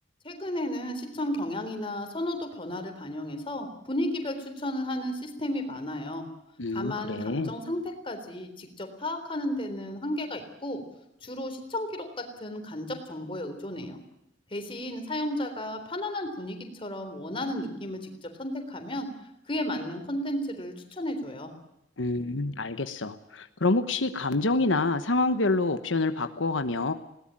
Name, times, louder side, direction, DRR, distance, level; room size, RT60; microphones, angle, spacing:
voice 1, 0.2-6.2 6.7-10.8 11.2-14.0 14.5-19.1 19.5-21.5, left 1 dB, 30° left, 6 dB, 3.7 m, -33 dB
voice 2, 6.6-7.5 22.0-26.9, left 2 dB, 85° left, 10 dB, 1.1 m, -27 dB
20.5 x 18.0 x 9.0 m, 0.86 s
head